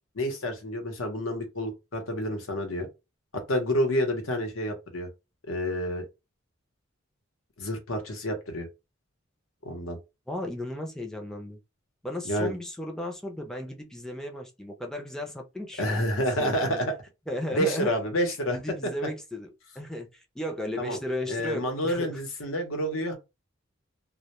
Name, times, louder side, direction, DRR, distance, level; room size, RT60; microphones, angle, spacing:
voice 1, 0.1-2.9 3.3-5.1 5.5-6.1 7.6-8.7 9.6-10.0 12.2-12.5 15.8-16.9 17.5-18.6 20.8-21.0 21.3-23.1, equal, 85° left, 0.8 m, -29 dB
voice 2, 10.3-11.6 12.0-16.8 17.3-18.0 18.5-19.5 19.8-22.2, left 1 dB, 5° left, 0.4 m, -35 dB
2.1 x 2.1 x 2.9 m
head